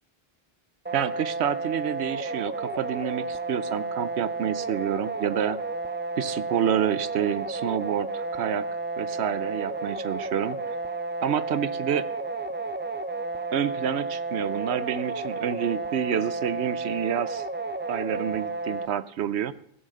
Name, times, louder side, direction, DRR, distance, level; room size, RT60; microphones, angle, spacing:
sound 1, 0.9-18.9, right 3 dB, 15° right, 0.4 m, -32 dB
voice 1, 0.9-5.6 6.2-8.7 9.0-10.7 11.2-12.1 13.5-17.4 17.9-19.5, right 9 dB, 75° right, 15 dB, 0.9 m, -28 dB
16.5 x 6.0 x 6.5 m, 0.71 s
omnidirectional pair, 1.1 m